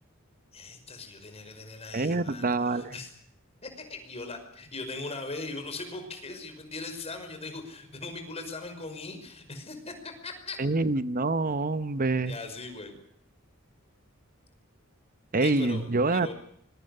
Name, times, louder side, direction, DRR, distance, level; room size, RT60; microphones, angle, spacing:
voice 1, 0.5-3.1 3.6-10.6 12.3-12.9 15.4-16.3, left 3 dB, 30° left, 6 dB, 5.3 m, -40 dB
voice 2, 1.9-2.9 10.6-12.4 15.3-16.3, right 3 dB, 40° right, 14 dB, 0.9 m, -26 dB
25.0 x 22.0 x 6.6 m, 0.68 s
head